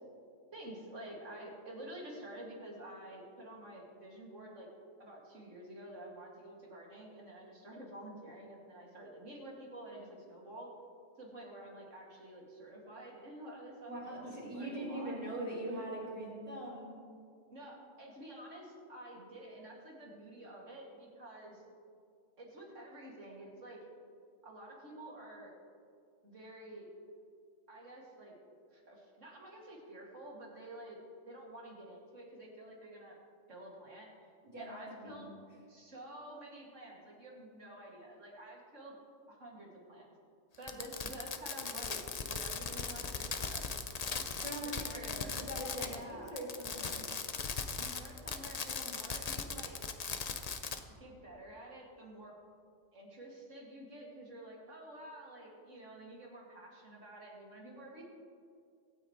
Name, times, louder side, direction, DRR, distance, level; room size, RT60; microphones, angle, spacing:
voice 1, 0.5-4.7 5.0-10.7 11.2-15.2 17.5-21.6 22.4-23.8 24.4-25.5 26.2-26.9 27.7-28.3 28.7-31.0 31.2-33.2 33.5-35.3 35.7-39.0 39.3-40.1 40.6-43.7 44.6-45.5 45.8-46.4 47.8-49.8 51.0-52.4 52.9-58.0, right 1 dB, 70° right, -3 dB, 2.7 m, -50 dB
voice 2, 13.9-16.9 34.4-35.2 44.4-47.1, right 1 dB, 50° right, -8 dB, 4.2 m, -42 dB
Fireworks, 40.6-46.0 46.3-50.8, left 5 dB, 40° left, 0.6 m, -38 dB
24.0 x 9.2 x 3.2 m, 2.3 s
omnidirectional pair, 1.4 m